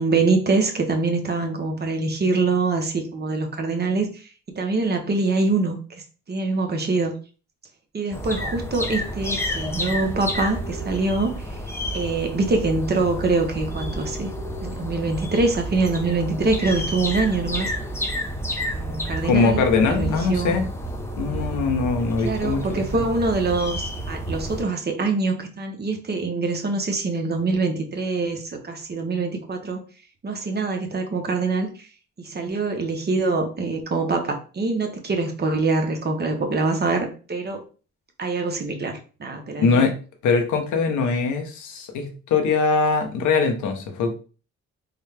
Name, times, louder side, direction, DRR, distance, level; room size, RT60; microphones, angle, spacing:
voice 1, 0.0-4.1 4.5-5.8 6.3-7.1 7.9-11.3 11.9-14.3 14.6-17.7 18.7-19.6 19.9-20.6 22.2-29.8 30.2-31.7 32.2-37.6 38.2-39.9, right 3 dB, 35° right, 4 dB, 0.9 m, -24 dB
sound 1, 8.1-24.6, equal, 10° left, 0.6 m, -30 dB
voice 2, 19.2-20.7 21.2-23.0 39.6-39.9 40.2-44.1, left 4 dB, 75° left, 5 dB, 0.9 m, -22 dB
3.8 x 2.2 x 3.3 m, 0.37 s
cardioid pair, 90°, 30 cm